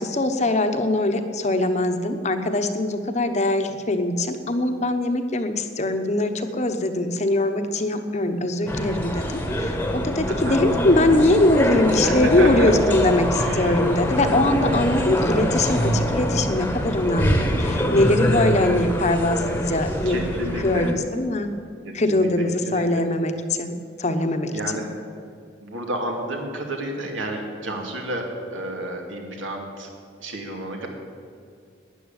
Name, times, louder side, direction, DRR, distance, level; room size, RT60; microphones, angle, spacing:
voice 1, 0.0-20.2 20.6-21.5 21.9-24.8, left 2 dB, 35° left, 7 dB, 1.0 m, -22 dB
sound 1, 8.7-20.9, equal, 10° left, 1.2 m, -24 dB
voice 2, 10.3-10.6 12.0-12.9 13.4-13.9 20.1-20.9 21.8-23.0 24.5-24.9 25.6-28.3 28.5-29.9 30.2-30.9, right 1 dB, 85° right, 1 dB, 2.7 m, -30 dB
13.0 x 9.9 x 8.8 m, 2.3 s
head